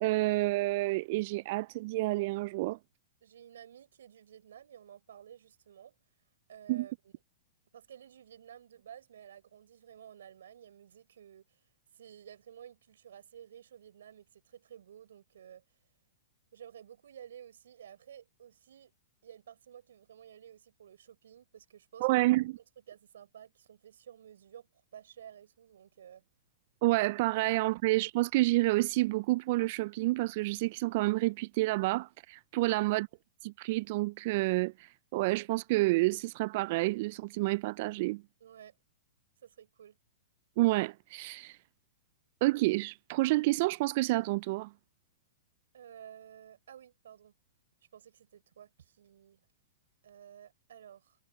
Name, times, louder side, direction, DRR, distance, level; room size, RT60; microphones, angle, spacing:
voice 1, 0.0-2.8 6.7-6.9 22.0-22.6 26.8-33.1 33.4-38.2 40.6-41.6 42.4-44.7, right 20 dB, 50° right, 0.4 m, -29 dB
voice 2, 3.2-6.0 6.5-7.1 7.7-11.6 11.9-15.6 16.5-18.9 19.2-22.1 22.9-26.2 32.6-32.9 38.4-38.8 39.4-40.0 45.7-47.3 47.9-49.4 50.0-51.2, right 9 dB, 75° right, 7.0 m, -53 dB
hypercardioid pair, 115°, 0 cm